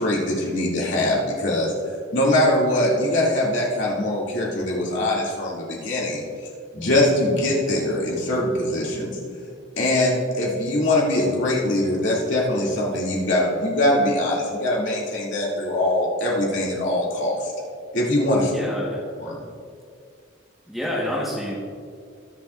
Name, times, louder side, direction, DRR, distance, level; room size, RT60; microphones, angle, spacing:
voice 1, 0.0-1.7 2.1-6.2 6.7-9.1 9.8-17.5 17.9-18.5 19.2-19.4, left 1 dB, 65° left, -5 dB, 2.5 m, -22 dB
voice 2, 18.5-19.0 20.7-21.6, left 1 dB, ahead, -4 dB, 1.3 m, -27 dB
21.0 x 7.5 x 2.5 m, 2.3 s
head